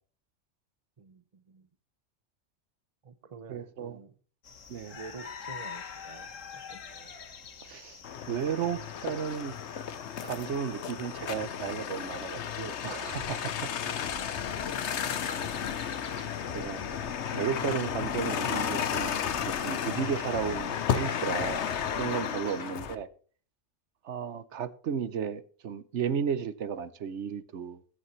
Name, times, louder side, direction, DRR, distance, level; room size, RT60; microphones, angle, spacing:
voice 1, 1.0-1.7 3.0-4.2 4.9-7.2 13.7-14.1, right 5 dB, 35° right, 0.7 m, -49 dB
voice 2, 3.5-4.0 4.7-5.0 7.6-8.0 8.3-9.6 10.2-13.7 15.8-16.3 16.5-16.8 17.3-19.2 19.6-21.6 22.0-23.1 24.0-27.8, right 7 dB, 70° right, 1.1 m, -34 dB
sound 1, 4.4-22.6, left 6 dB, 90° left, 1.6 m, -46 dB
sound 2, 8.0-23.0, left 8 dB, 65° left, 1.0 m, -33 dB
sound 3, 13.1-22.9, left 3 dB, 40° left, 1.9 m, -46 dB
20.5 x 8.4 x 3.1 m
omnidirectional pair, 1.3 m